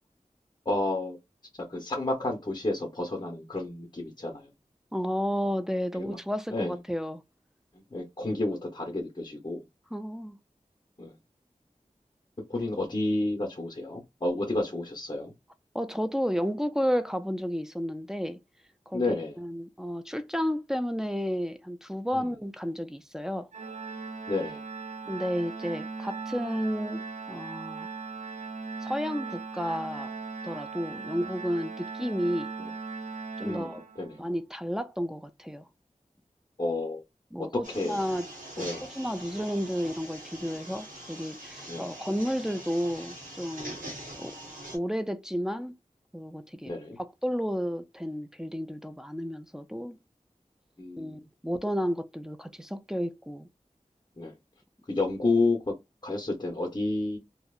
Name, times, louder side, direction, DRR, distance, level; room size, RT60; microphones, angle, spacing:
voice 1, 0.7-1.2 1.7-4.5 5.9-6.2 6.5-6.8 7.9-9.6 11.0-11.1 12.5-15.3 18.9-19.4 22.1-22.3 24.3-24.6 30.9-31.0 32.6-32.7 33.4-33.7 34.0-34.2 36.6-37.0 37.5-38.0 38.6-38.8 41.7-41.9 44.2-44.3 46.7-47.0 50.8-51.2 54.2-54.3 54.9-55.7 56.0-57.2, left 2 dB, 35° left, 0.7 m, -30 dB
voice 2, 4.9-7.2 9.9-10.4 15.7-18.4 18.9-23.5 25.1-27.9 28.8-30.1 30.4-32.5 33.4-33.8 34.2-35.6 37.3-38.3 38.6-43.8 44.2-44.4 44.7-45.7 46.1-50.0 51.0-53.5, equal, 5° right, 0.3 m, -32 dB
Organ, 23.5-34.3, right 4 dB, 65° right, 0.5 m, -39 dB
sound 1, 37.6-44.8, right 1 dB, 90° right, 1.0 m, -43 dB
2.7 x 2.0 x 2.3 m
wide cardioid pair, 50°, 13 cm